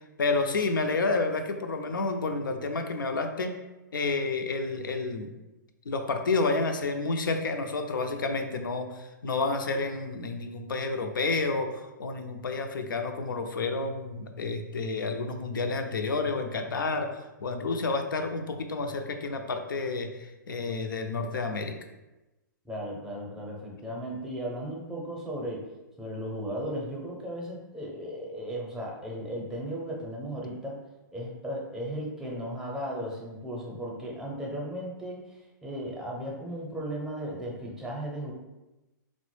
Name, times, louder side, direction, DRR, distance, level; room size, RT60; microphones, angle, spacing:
voice 1, 0.2-3.6 3.9-5.3 5.9-21.8, left 3 dB, 90° left, 5 dB, 0.5 m, -30 dB
voice 2, 22.6-25.7 26.0-30.8 31.1-38.3, equal, 5° right, -2 dB, 0.6 m, -36 dB
3.8 x 2.0 x 3.1 m, 1.0 s
hypercardioid pair, 135°, 11 cm